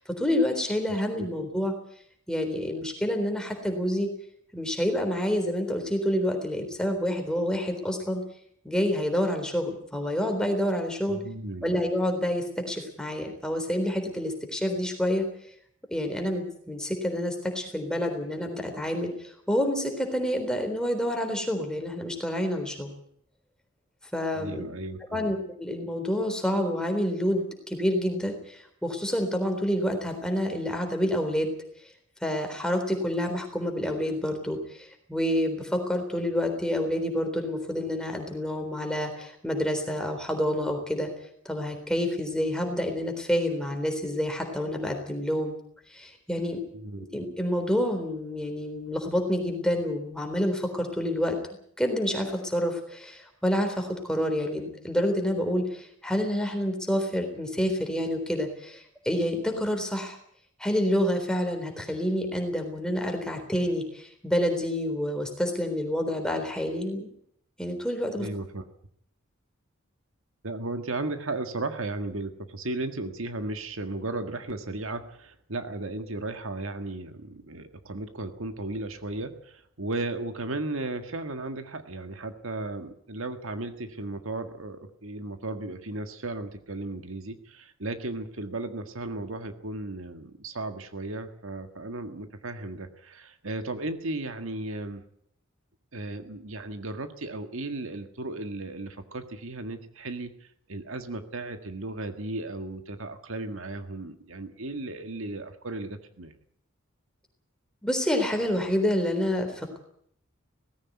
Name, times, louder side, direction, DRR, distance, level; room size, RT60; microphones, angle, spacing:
voice 1, 0.0-1.7 2.3-4.1 4.5-8.2 8.6-11.2 11.6-15.2 15.9-22.9 24.1-24.7 25.1-31.5 32.2-41.1 41.5-45.5 45.9-46.6 47.0-51.4 51.8-60.2 60.6-67.1 67.6-68.3 107.8-109.8, equal, 5° left, 4 dB, 3.8 m, -28 dB
voice 2, 11.1-11.8 24.4-25.3 46.7-47.1 68.2-68.6 70.4-95.0 95.9-106.3, right 2 dB, 75° right, 7 dB, 1.8 m, -35 dB
18.0 x 16.0 x 9.4 m, 0.66 s
head